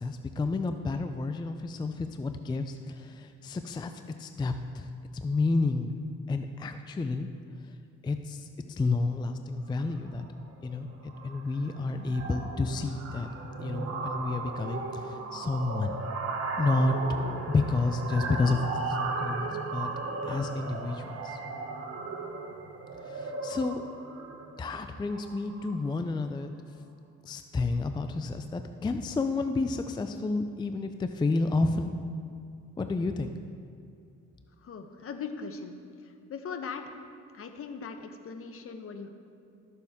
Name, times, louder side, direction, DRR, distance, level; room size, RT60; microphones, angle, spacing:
voice 1, 0.0-3.9 4.2-5.9 6.3-7.3 7.7-7.8 8.0-10.2 10.6-13.3 13.6-16.0 16.6-17.0 17.5-19.5 19.7-19.9 20.2-21.4 23.0-23.8 24.6-26.5 27.2-31.9 32.8-33.4, left 3 dB, 15° left, 7 dB, 0.4 m, -30 dB
sound 1, 9.9-10.2 10.5-10.8 11.0-25.9, right 3 dB, 50° right, 1.2 m, -36 dB
voice 2, 34.6-35.7 36.3-36.9 37.3-39.1, left 5 dB, 50° left, 7 dB, 0.9 m, -39 dB
13.0 x 6.9 x 3.5 m, 2.4 s
cardioid pair, 90°, 30 cm